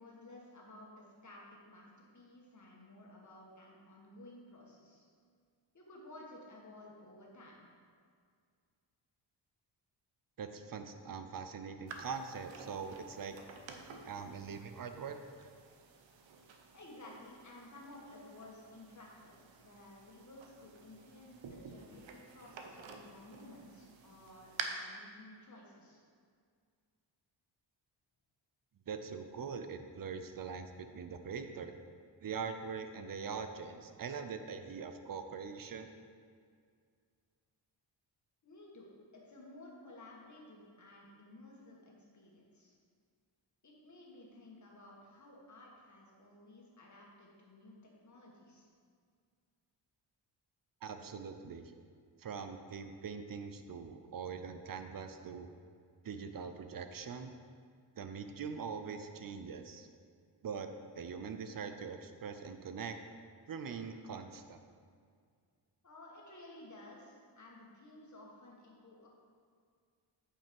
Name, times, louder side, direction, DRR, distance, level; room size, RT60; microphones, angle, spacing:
voice 1, 0.0-1.4 1.7-5.1 5.7-7.7 16.7-19.3 19.6-26.0 38.4-42.7 43.6-48.7 65.8-69.2, left 1 dB, 40° left, -2 dB, 1.8 m, -55 dB
voice 2, 10.4-13.4 14.0-15.5 28.9-31.8 32.2-35.9 50.8-51.7 52.2-55.5 56.0-57.3 58.0-59.9 60.4-60.7 61.0-63.0 63.5-64.6, right 6 dB, 50° right, 8 dB, 0.6 m, -43 dB
sound 1, 11.9-24.6, right 6 dB, 90° right, 0.9 m, -51 dB
8.6 x 5.5 x 5.3 m, 2.1 s
wide cardioid pair, 130°, 45 cm